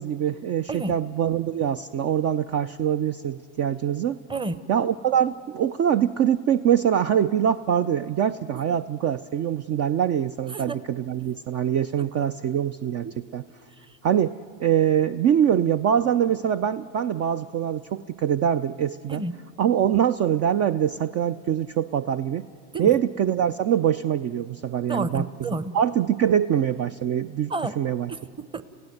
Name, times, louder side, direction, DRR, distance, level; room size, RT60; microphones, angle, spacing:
voice 1, 0.0-4.2 4.7-13.1 13.3-13.4 14.0-19.2 19.6-22.4 22.8-25.2 25.7-28.1, right 9 dB, 40° right, 11 dB, 0.5 m, -24 dB
voice 2, 4.3-4.6 8.7-8.8 10.5-10.8 13.0-13.1 13.9-14.0 19.1-19.3 22.7-22.9 24.9-25.8 27.5-27.7 28.1-28.6, right 2 dB, 15° right, 15 dB, 0.9 m, -30 dB
30.0 x 16.0 x 7.9 m, 2.5 s
hypercardioid pair, 85°, 38 cm